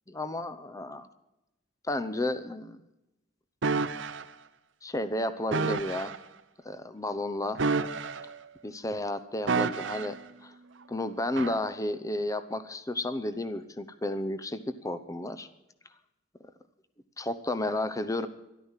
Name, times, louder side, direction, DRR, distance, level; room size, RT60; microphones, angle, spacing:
voice 1, 0.1-1.1 1.9-2.8 4.8-6.1 6.6-7.6 8.6-10.2 10.4-10.5 10.9-15.5 17.2-18.3, left 1 dB, 20° left, 13 dB, 0.8 m, -32 dB
sound 1, 3.6-4.2 5.5-6.2 7.5-8.5 9.5-10.2 11.4-11.6, right 4 dB, 80° right, 0.8 m, -29 dB
13.0 x 12.5 x 7.3 m, 0.92 s
head